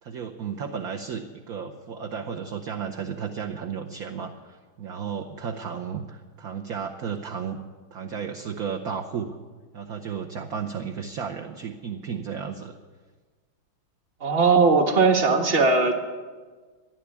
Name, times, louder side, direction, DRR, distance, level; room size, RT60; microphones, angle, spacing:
voice 1, 0.0-7.6 7.9-9.3 9.7-12.8, right 7 dB, 55° right, 1 dB, 1.1 m, -33 dB
voice 2, 14.2-15.9, right 4 dB, 30° right, 5 dB, 1.4 m, -19 dB
13.0 x 11.0 x 8.3 m, 1.4 s
omnidirectional pair, 2.2 m